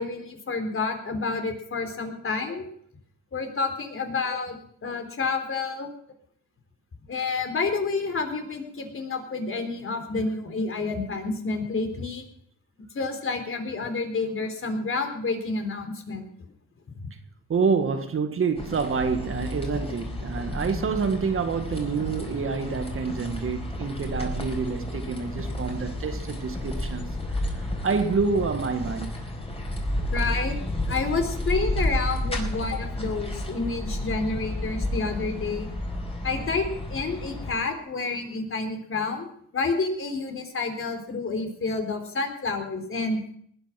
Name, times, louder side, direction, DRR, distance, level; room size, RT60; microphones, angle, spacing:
voice 1, 0.0-2.7 3.3-4.6 4.8-5.9 7.1-12.2 12.9-16.3 16.9-17.1 30.1-35.7 36.2-43.2, left 4 dB, 45° left, 3.7 m, -29 dB
voice 2, 17.5-29.1, right 5 dB, 45° right, 1.8 m, -27 dB
sound 1, 18.6-37.6, left 1 dB, 20° left, 4.7 m, -31 dB
19.5 x 10.0 x 6.0 m
cardioid pair, 90°, 30 cm